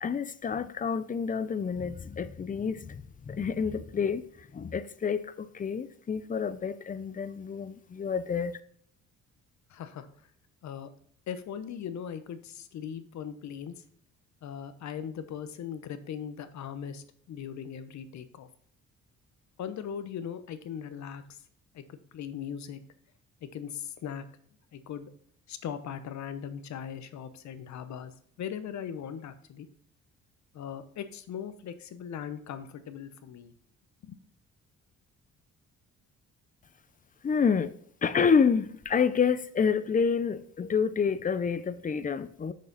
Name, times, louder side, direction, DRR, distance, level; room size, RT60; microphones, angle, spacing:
voice 1, 0.0-4.3 4.5-8.6 37.2-37.8 38.0-42.5, left 6 dB, 25° left, 0.6 m, -28 dB
voice 2, 9.7-10.1 10.6-10.9 11.3-13.7 14.4-18.5 19.6-21.2 21.7-22.8 23.4-24.2 24.7-25.1 25.5-28.1 28.4-29.7 30.5-33.5 34.0-34.2, left 8 dB, 65° left, 0.9 m, -39 dB
6.6 x 6.4 x 4.1 m
cardioid pair, 90°, 30 cm